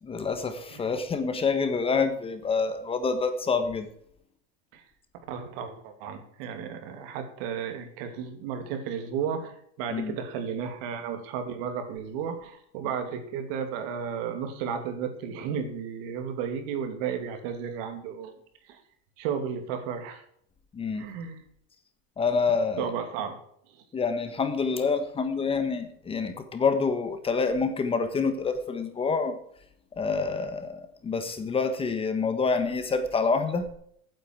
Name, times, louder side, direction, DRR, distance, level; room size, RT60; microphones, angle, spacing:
voice 1, 0.0-3.9 9.9-10.1 20.7-21.1 22.2-22.9 23.9-29.4 30.0-33.6, left 4 dB, 20° left, 9 dB, 1.3 m, -27 dB
voice 2, 5.3-18.4 18.7-18.8 19.2-20.2 21.0-21.4 22.8-23.4, right 7 dB, 70° right, 7 dB, 2.7 m, -33 dB
15.5 x 9.2 x 4.6 m, 0.67 s
cardioid pair, 155°, 31 cm